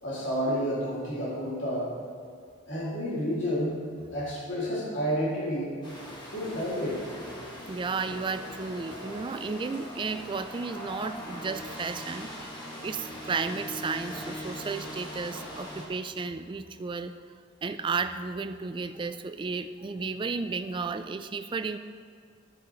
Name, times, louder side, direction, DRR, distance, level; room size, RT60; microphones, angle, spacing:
voice 1, 0.0-1.9 2.7-3.8 4.1-5.7 6.3-7.0, equal, 65° left, -8 dB, 2.5 m, -30 dB
sound 1, 5.8-15.9, equal, 25° left, 1.6 m, -41 dB
voice 2, 7.7-12.3 12.8-17.1 17.6-21.8, right 4 dB, 25° right, 10 dB, 0.3 m, -33 dB
12.0 x 7.5 x 3.1 m, 2.1 s
head